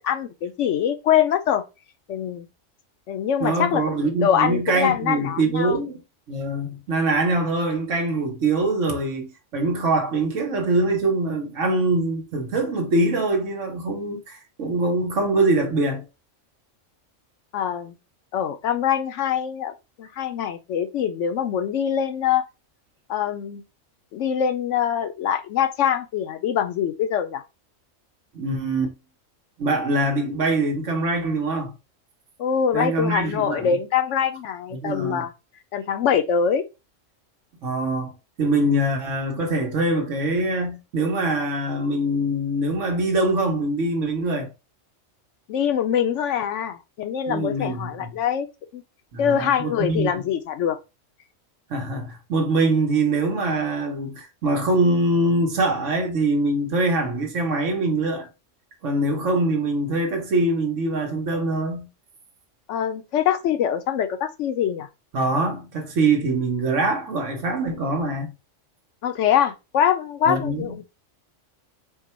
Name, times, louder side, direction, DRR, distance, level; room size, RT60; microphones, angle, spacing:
voice 1, 0.0-1.6 2.1-2.5 3.1-5.8 17.5-17.9 18.3-19.7 20.0-22.4 23.1-23.6 24.1-27.4 32.4-35.3 35.7-36.6 45.5-48.5 48.7-48.8 49.2-50.8 62.7-64.9 69.0-70.8, left 8 dB, 70° left, 0.9 m, -23 dB
voice 2, 3.4-6.0 6.3-16.0 28.3-28.9 29.6-31.7 32.7-33.8 34.7-35.3 37.6-38.1 38.4-44.5 47.3-48.1 49.1-50.2 51.7-58.3 58.8-61.9 65.1-68.3 70.3-70.8, right 2 dB, 70° right, 1.4 m, -23 dB
4.6 x 2.2 x 4.3 m
omnidirectional pair, 1.3 m